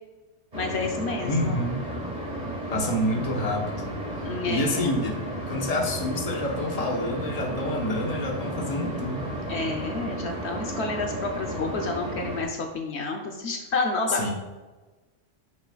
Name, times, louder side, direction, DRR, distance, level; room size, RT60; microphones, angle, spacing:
voice 1, 0.5-1.6 4.2-5.0 9.5-14.2, left 3 dB, 70° left, 2 dB, 1.0 m, -30 dB
sound 1, 0.5-12.4, right 1 dB, 35° right, 1.7 m, -33 dB
voice 2, 1.2-1.8 2.7-3.9 4.5-5.2 5.5-9.4 14.1-14.3, left 1 dB, 35° left, 1 dB, 1.1 m, -28 dB
9.5 x 5.7 x 2.3 m, 1.2 s
omnidirectional pair, 1.2 m